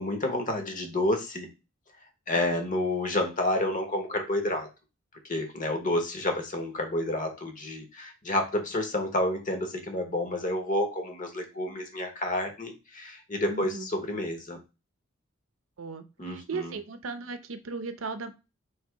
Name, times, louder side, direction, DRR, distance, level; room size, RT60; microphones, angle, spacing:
voice 1, 0.0-1.5 2.3-4.7 5.3-14.6 16.2-16.7, left 1 dB, 40° left, 4 dB, 0.9 m, -29 dB
voice 2, 13.5-13.9 15.8-18.3, right 4 dB, 75° right, 10 dB, 0.6 m, -37 dB
3.3 x 2.8 x 4.5 m, 0.28 s
head